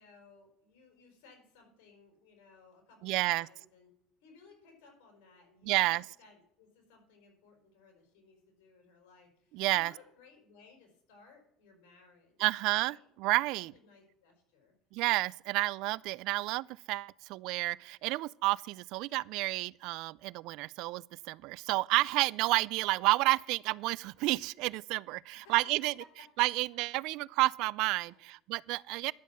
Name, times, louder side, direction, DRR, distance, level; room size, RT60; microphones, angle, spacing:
voice 1, 0.0-3.9 4.2-12.4 12.7-13.3 13.7-14.7 21.9-22.2 25.3-25.7 26.0-26.1 27.9-28.2, left 4 dB, 85° left, 5.2 m, -60 dB
voice 2, 3.0-3.5 5.6-6.1 9.5-9.9 12.4-13.7 14.9-25.9 26.4-29.1, right 20 dB, 65° right, 0.3 m, -30 dB
11.0 x 7.2 x 7.6 m
cardioid pair, 135°, 0 cm